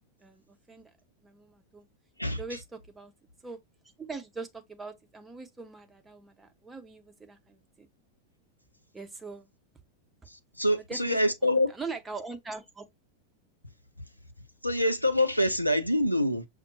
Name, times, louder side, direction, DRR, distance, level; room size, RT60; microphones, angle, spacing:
voice 1, 0.2-0.9 1.2-1.9 2.4-3.1 3.4-3.6 4.0-7.9 8.9-9.5 10.9-12.9, right 4 dB, 10° right, 0.8 m, -42 dB
voice 2, 10.3-11.7 14.6-16.5, left 1 dB, 90° left, 0.6 m, -26 dB
5.9 x 2.2 x 2.7 m
figure-of-eight pair, 90°, 0 cm